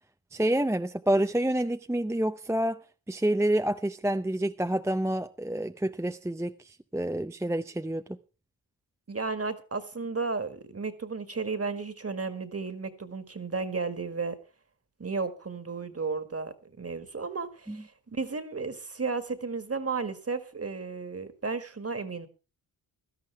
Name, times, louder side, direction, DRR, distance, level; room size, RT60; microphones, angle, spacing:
voice 1, 0.3-2.8 3.1-8.2 17.7-17.8, right 1 dB, 5° right, 0.6 m, -28 dB
voice 2, 9.1-14.4 15.0-22.3, right 4 dB, 30° right, 1.8 m, -33 dB
16.5 x 12.0 x 3.4 m
cardioid pair, 50°, 45 cm